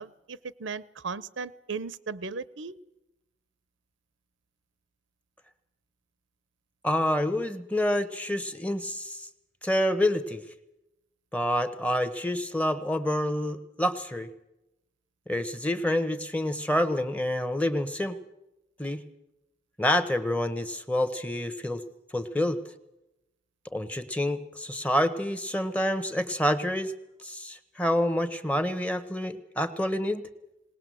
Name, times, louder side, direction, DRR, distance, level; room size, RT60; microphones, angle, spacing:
voice 1, 0.0-2.7, right 5 dB, 85° right, 17 dB, 0.8 m, -36 dB
voice 2, 6.8-9.3 9.6-10.4 11.3-14.3 15.3-18.2 18.8-19.0 19.8-21.8 22.1-22.6 23.7-26.9 27.2-30.3, left 1 dB, 5° left, 10 dB, 1.0 m, -28 dB
19.5 x 19.5 x 7.7 m, 0.91 s
head